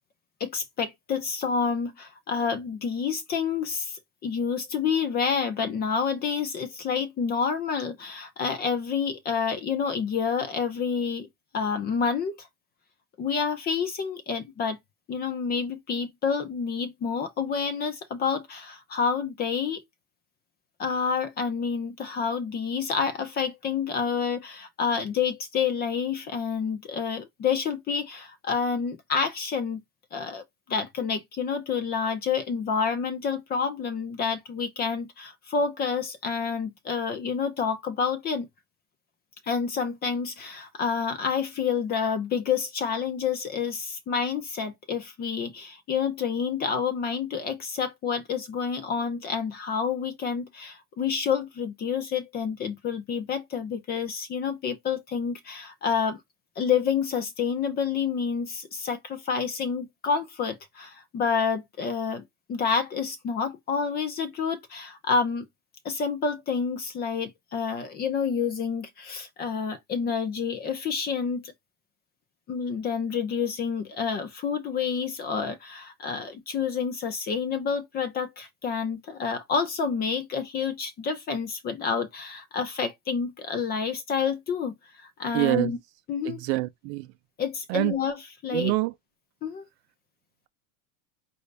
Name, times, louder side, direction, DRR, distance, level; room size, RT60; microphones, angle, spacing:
voice 1, 0.4-11.3 11.5-12.5 13.2-14.8 15.1-19.8 20.8-29.8 30.1-30.4 30.7-38.5 39.5-56.2 56.6-62.2 62.5-65.5 65.8-71.5 72.5-85.8 86.1-86.4 87.4-88.7 89.4-89.7, left 6 dB, 20° left, 0.6 m, -28 dB
voice 2, 85.3-85.7 86.2-87.1 87.7-88.0 88.5-88.9, right 20 dB, 45° right, 0.6 m, -26 dB
5.5 x 2.6 x 3.3 m
supercardioid pair, 165°, 45 cm